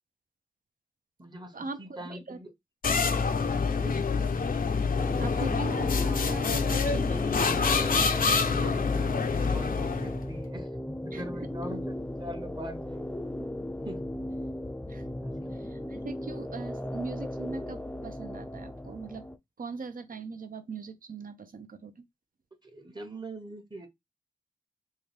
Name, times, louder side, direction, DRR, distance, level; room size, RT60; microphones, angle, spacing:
voice 1, 1.2-2.5 3.8-4.0 8.0-10.7 11.0-11.9 12.2-13.2 13.8-14.0 15.2-15.6 22.6-23.9, right 1 dB, 30° right, 0.9 m, -43 dB
sound 1, 2.8-10.2, left 5 dB, 75° left, 0.5 m, -26 dB
sound 2, 5.0-19.4, left 1 dB, 10° left, 0.4 m, -36 dB
voice 2, 5.2-8.0 11.1-11.2 14.9-15.0 15.6-19.3 19.6-21.9, right 4 dB, 70° right, 0.6 m, -40 dB
3.8 x 2.6 x 3.2 m
wide cardioid pair, 80°, 15 cm